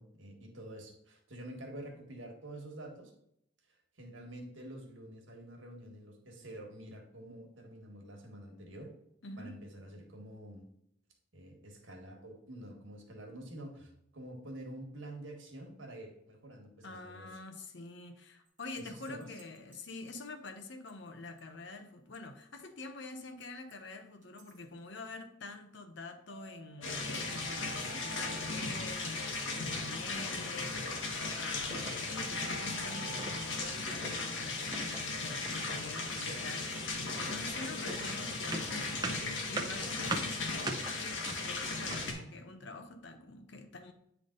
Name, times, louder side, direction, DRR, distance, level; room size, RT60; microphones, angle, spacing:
voice 1, 0.0-3.1 4.0-8.9 9.4-10.6 11.3-17.4 18.7-19.3 27.6-28.1, right 1 dB, 85° right, 1 dB, 1.6 m, -48 dB
voice 2, 9.2-9.6 16.8-38.9 39.4-43.9, left 2 dB, 65° left, 7 dB, 0.8 m, -47 dB
sound 1, 18.6-20.5 20.9-21.0 21.4-21.5 22.1-22.6 23.2-23.7 24.2-24.6 26.3-30.1 31.2-33.9, right 5 dB, 40° right, 0.9 m, -52 dB
sound 2, 26.8-42.1, left 3 dB, 85° left, 1.4 m, -37 dB
sound 3, 31.7-32.1 32.4-32.7 33.1-33.5 33.8-34.2 34.7-35.7 36.0-36.4 36.7-42.2, right 3 dB, 20° right, 0.6 m, -42 dB
8.7 x 3.5 x 3.9 m, 0.73 s
head